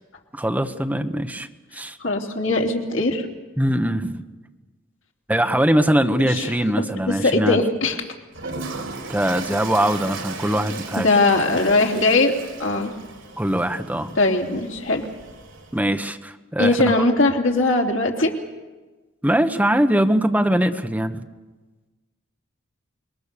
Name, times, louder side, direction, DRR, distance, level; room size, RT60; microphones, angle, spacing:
voice 1, 0.3-1.5 1.7-2.0 3.6-4.2 5.3-7.6 9.1-11.1 13.4-14.1 15.7-17.0 19.2-21.3, right 1 dB, 10° right, 6 dB, 1.1 m, -21 dB
voice 2, 2.0-3.3 6.3-6.5 6.8-6.9 7.2-8.0 11.0-12.3 12.6-12.9 14.2-15.0 16.6-18.3, left 2 dB, 75° left, 1 dB, 3.2 m, -20 dB
Toilet flush, 8.3-15.8, right 4 dB, 80° right, 4.2 m, -36 dB
26.5 x 22.0 x 6.8 m, 1.2 s
head